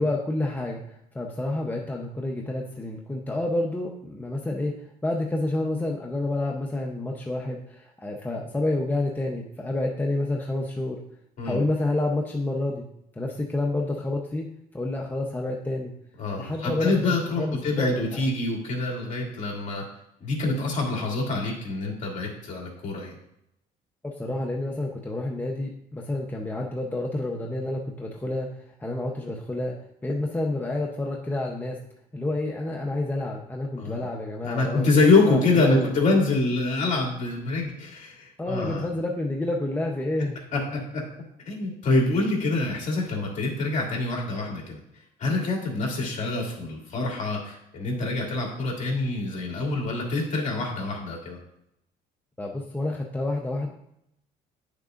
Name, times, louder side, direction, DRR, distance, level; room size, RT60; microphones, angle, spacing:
voice 1, 0.0-4.7 5.0-11.0 11.4-12.9 13.1-14.5 14.7-15.9 16.4-17.1 17.4-18.2 24.0-29.7 30.0-31.8 32.1-35.9 38.4-40.4 52.4-53.7, left 2 dB, 10° left, 0 dB, 0.8 m, -29 dB
voice 2, 16.2-19.8 20.2-23.1 33.8-34.0 34.4-38.9 40.5-41.0 41.5-44.8 45.2-51.4, left 3 dB, 45° left, -2 dB, 2.6 m, -25 dB
10.0 x 6.6 x 2.5 m, 0.78 s
cardioid pair, 110°, 17 cm